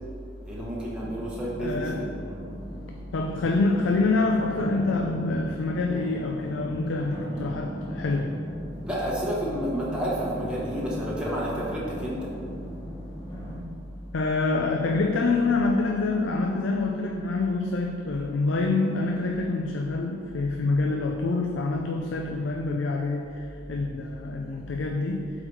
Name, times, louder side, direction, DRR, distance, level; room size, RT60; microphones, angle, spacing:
voice 1, 0.4-2.4 8.8-12.3, equal, 5° right, -6 dB, 1.0 m, -30 dB
sound 1, 1.0-13.6, equal, 20° left, 1.0 m, -38 dB
voice 2, 1.6-2.0 3.1-8.3 14.1-25.3, left 3 dB, 85° left, 2 dB, 0.5 m, -26 dB
7.8 x 4.0 x 4.6 m, 2.5 s
head